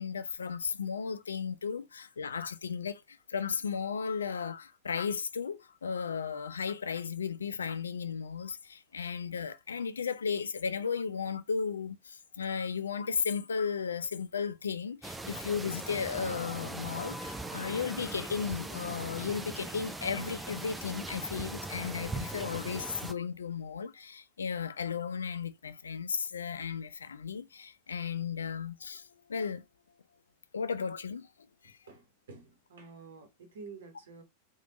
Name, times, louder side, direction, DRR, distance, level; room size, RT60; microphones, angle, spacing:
voice 1, 0.0-29.6 30.5-31.3 31.6-31.8, left 6 dB, 70° left, 0.3 m, -35 dB
sound 1, 15.0-23.1, right 2 dB, 5° right, 0.4 m, -40 dB
voice 2, 31.9-34.2, right 4 dB, 60° right, 1.0 m, -49 dB
3.3 x 2.3 x 2.9 m
figure-of-eight pair, 90°, 0 cm